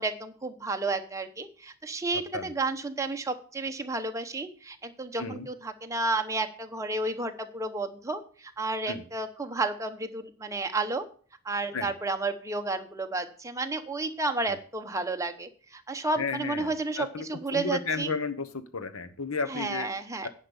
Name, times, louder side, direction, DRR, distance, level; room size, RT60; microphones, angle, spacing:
voice 1, 0.0-11.0 11.4-18.1 19.5-20.3, right 3 dB, 15° right, 6 dB, 0.9 m, -32 dB
voice 2, 16.2-17.3 17.5-18.5 18.7-19.9 20.2-20.3, left 4 dB, 75° left, 11 dB, 1.0 m, -33 dB
10.0 x 5.4 x 7.0 m, 0.43 s
head